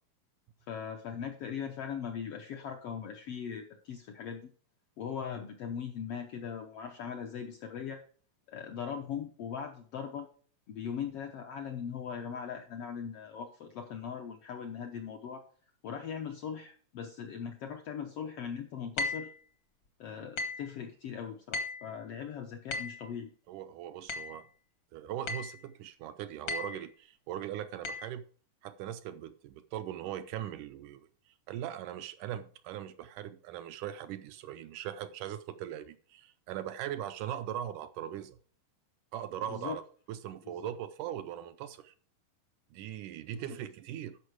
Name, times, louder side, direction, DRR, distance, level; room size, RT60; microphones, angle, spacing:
voice 1, 0.7-4.5 5.0-8.0 8.5-10.3 10.7-15.4 15.8-19.3 20.0-23.3 39.5-39.8 40.4-40.7 43.3-43.4, left 7 dB, 75° left, 1.4 m, -40 dB
sound 1, 19.0-19.3 20.4-20.7 21.5-21.9 22.7-23.0 24.1-24.4 25.3-25.6 26.5-26.8 27.8-28.1, left 3 dB, 55° left, 1.2 m, -36 dB
voice 2, 23.5-24.5 24.9-28.3 28.6-31.1 31.5-38.4 39.1-39.8 40.1-41.9 42.7-44.2, right 11 dB, 80° right, 1.9 m, -40 dB
12.5 x 5.6 x 4.8 m
omnidirectional pair, 3.9 m